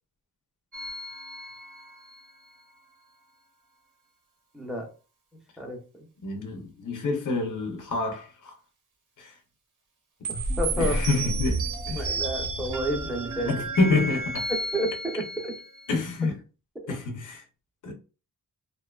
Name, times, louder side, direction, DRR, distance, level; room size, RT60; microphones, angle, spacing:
sound 1, 0.7-2.3 10.2-16.0, right 2 dB, 55° right, 0.7 m, -32 dB
voice 1, 4.5-4.9 5.6-6.1 10.3-11.0 12.0-13.5 14.7-15.5 16.8-16.9, equal, ahead, 0.7 m, -31 dB
voice 2, 6.2-8.5 9.2-9.4 10.8-12.2 13.4-14.5 15.9-16.4 16.9-17.5 17.8-17.9, left 3 dB, 55° left, 0.6 m, -28 dB
2.6 x 2.3 x 2.2 m
wide cardioid pair, 110°, 38 cm